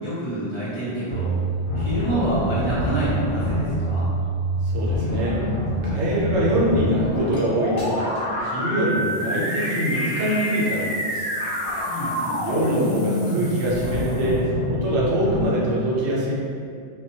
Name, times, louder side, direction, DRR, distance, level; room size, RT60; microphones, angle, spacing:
voice 1, 0.0-1.4 1.7-4.0 11.8-12.6, right 1 dB, 35° left, -11 dB, 0.6 m, -28 dB
sound 1, 1.1-15.5, equal, 90° left, 0.9 m, -26 dB
voice 2, 4.7-5.4 5.8-8.1 8.4-11.3 12.4-16.3, right 1 dB, 85° right, -5 dB, 0.9 m, -24 dB
sound 2, 7.3-7.4 7.8-8.3 8.8-14.4, left 2 dB, 60° left, 0.8 m, -44 dB
2.2 x 2.2 x 2.6 m, 2.4 s
omnidirectional pair, 1.2 m